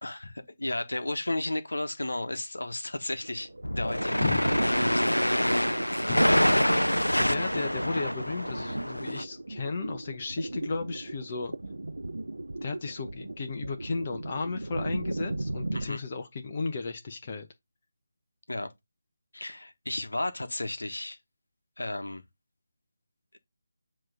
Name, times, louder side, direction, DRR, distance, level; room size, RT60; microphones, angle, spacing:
voice 1, 0.0-3.5 3.7-5.2 15.7-16.0 18.5-18.7 19.3-21.2 21.8-22.2, left 2 dB, 70° left, 1.3 m, -34 dB
sound 1, 3.2-15.9, right 2 dB, 70° right, 0.7 m, -36 dB
sound 2, 3.6-9.2, equal, 90° left, 0.4 m, -26 dB
voice 2, 7.2-11.5 12.6-17.5, left 4 dB, 35° left, 0.9 m, -34 dB
7.7 x 3.2 x 5.1 m
figure-of-eight pair, 155°, 0 cm